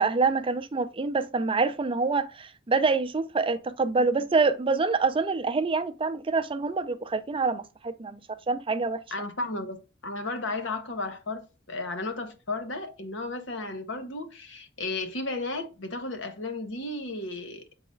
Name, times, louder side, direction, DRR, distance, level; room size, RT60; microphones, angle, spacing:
voice 1, 0.0-8.2 8.5-9.0, right 4 dB, 25° right, 0.5 m, -26 dB
voice 2, 9.1-17.6, left 2 dB, 70° left, 1.2 m, -34 dB
6.7 x 4.0 x 3.9 m
head